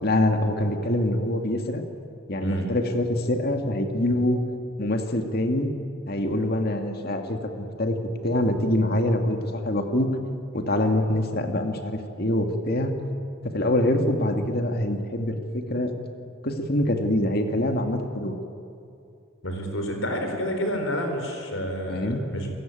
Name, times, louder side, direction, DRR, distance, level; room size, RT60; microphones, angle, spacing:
voice 1, 0.0-1.8 2.3-4.4 4.8-5.7 6.1-8.0 8.2-10.1 10.5-12.9 13.4-15.9 16.4-18.4 21.9-22.3, left 1 dB, 50° left, 5 dB, 2.1 m, -25 dB
voice 2, 2.4-2.7 19.4-22.5, equal, 75° left, 4 dB, 4.3 m, -29 dB
28.5 x 16.0 x 9.2 m, 2.6 s
head